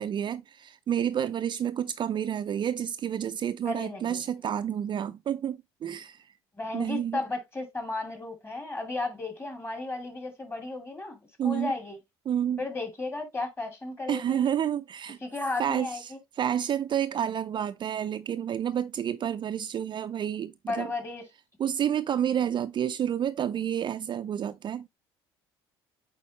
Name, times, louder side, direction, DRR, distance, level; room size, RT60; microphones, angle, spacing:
voice 1, 0.0-6.3 6.7-7.2 11.4-11.7 12.3-12.6 14.1-15.2 15.6-20.9 21.6-24.9, right 9 dB, 40° right, 0.4 m, -29 dB
voice 2, 3.6-4.2 6.5-12.0 12.6-14.5 15.2-16.2 20.7-21.2, left 3 dB, 20° left, 2.7 m, -34 dB
8.3 x 4.2 x 2.9 m
hypercardioid pair, 60°, 13 cm